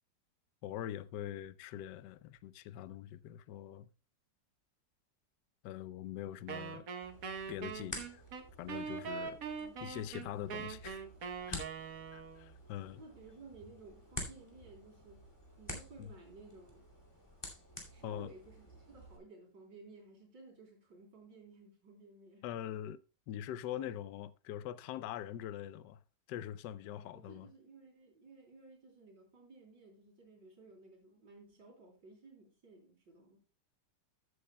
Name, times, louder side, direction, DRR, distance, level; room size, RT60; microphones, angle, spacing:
voice 1, 0.6-3.9 5.6-6.9 7.5-8.2 8.6-9.4 9.8-11.1 11.5-11.6 12.1-13.0 16.0-16.1 18.0-18.3 22.4-23.0 23.3-26.0 26.3-27.5, left 11 dB, 75° left, 1.2 m, -43 dB
Wind instrument woodwind instrument, 6.5-12.5, right 6 dB, 55° right, 1.3 m, -42 dB
sound 1, 7.0-19.2, equal, 15° left, 2.3 m, -50 dB
voice 2, 12.8-15.2 15.6-16.9 17.9-22.5 26.8-33.4, right 3 dB, 85° right, 4.0 m, -56 dB
15.0 x 8.2 x 2.2 m
omnidirectional pair, 1.9 m